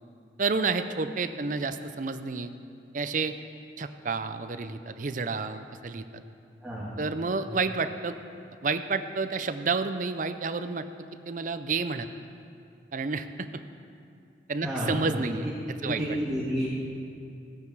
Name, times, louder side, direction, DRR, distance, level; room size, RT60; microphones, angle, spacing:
voice 1, 0.4-2.5 2.9-3.3 3.8-6.2 7.0-8.1 8.6-10.9 11.3-12.1 12.9-13.5 14.5-15.4 15.8-16.0, right 4 dB, 45° right, 10 dB, 0.5 m, -30 dB
voice 2, 6.6-7.0 7.4-7.5 14.6-15.2 15.8-16.7, equal, 5° right, -9 dB, 1.6 m, -31 dB
16.0 x 8.8 x 4.7 m, 2.5 s
head